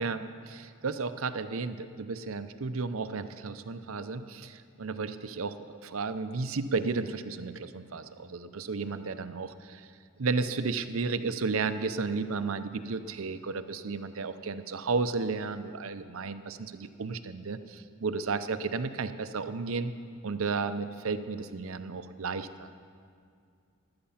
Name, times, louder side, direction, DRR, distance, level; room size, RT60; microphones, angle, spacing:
voice 1, 0.0-9.9 10.2-19.9 20.2-22.7, right 4 dB, 80° right, 11 dB, 0.7 m, -33 dB
15.5 x 11.5 x 5.7 m, 2.3 s
head